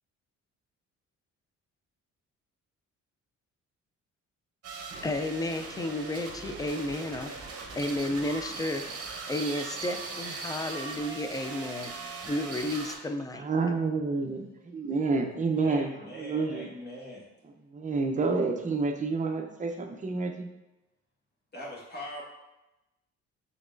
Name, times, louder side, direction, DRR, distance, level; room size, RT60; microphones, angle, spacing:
sound 1, 4.6-13.0, right 4 dB, 50° right, 0.9 m, -39 dB
voice 1, 5.0-7.3 7.8-8.9 9.3-13.4, left 1 dB, 15° left, 6 dB, 0.4 m, -32 dB
voice 2, 13.3-16.7 17.7-20.5, right 3 dB, 25° right, 3 dB, 0.6 m, -29 dB
voice 3, 15.6-17.3 21.5-22.2, equal, 35° left, -5 dB, 1.5 m, -41 dB
5.3 x 4.0 x 2.5 m, 0.98 s
cardioid pair, 90°, 30 cm